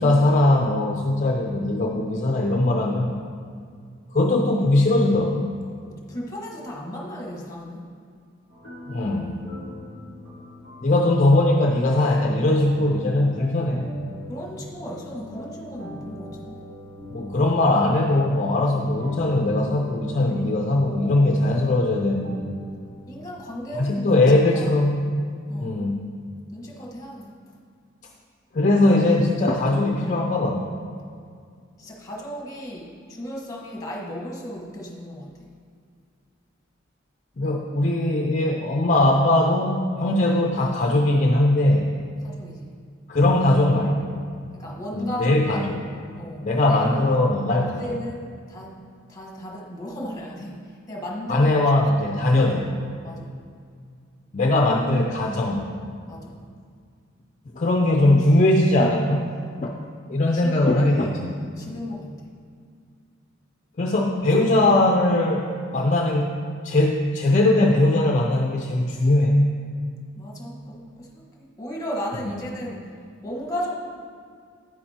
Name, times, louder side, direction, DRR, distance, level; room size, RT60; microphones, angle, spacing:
voice 1, 0.0-3.1 4.1-5.5 8.9-9.4 10.8-13.9 17.1-22.4 23.7-25.0 25.6-26.0 28.5-30.6 37.4-41.9 43.1-44.2 44.9-45.8 46.4-47.8 51.3-52.7 54.3-55.7 57.5-59.3 59.6-59.8 60.1-61.3 63.8-65.5 65.7-69.6, left 1 dB, 40° left, 1 dB, 0.5 m, -20 dB
voice 2, 5.9-8.0 14.3-16.6 20.3-20.5 23.1-24.2 24.5-24.8 25.5-25.8 26.5-27.5 31.8-35.6 42.2-42.8 44.5-47.0 47.5-48.8 49.1-51.6 52.4-53.4 56.1-56.4 60.3-61.1 61.6-62.3 70.1-72.9 73.2-73.7, equal, 15° left, -1 dB, 1.3 m, -35 dB
sound 1, 8.5-23.8, left 2 dB, 65° right, 2.3 m, -41 dB
9.6 x 9.4 x 2.9 m, 2.2 s
head